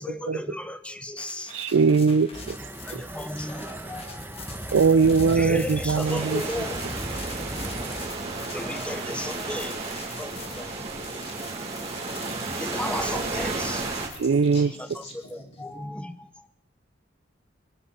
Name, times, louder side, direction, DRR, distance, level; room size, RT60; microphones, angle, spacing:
voice 1, 0.0-1.5 2.6-4.4 4.8-7.1 7.4-7.7 8.4-10.9 11.3-11.4 12.6-13.9 14.8-16.5, left 1 dB, 5° left, 10 dB, 0.9 m, -36 dB
sound 1, 1.2-15.6, left 4 dB, 30° left, 2.2 m, -45 dB
voice 2, 1.5-2.6 2.9-3.0 4.7-6.4 14.2-14.7, right 5 dB, 75° right, 12 dB, 0.5 m, -21 dB
sound 2, 2.3-8.1, right 1 dB, 10° right, 1.3 m, -37 dB
sound 3, 6.0-14.1, right 3 dB, 30° right, 3.3 m, -33 dB
voice 3, 14.5-15.9, left 1 dB, 60° left, -1 dB, 5.4 m, -50 dB
24.0 x 12.0 x 4.4 m, 0.83 s
head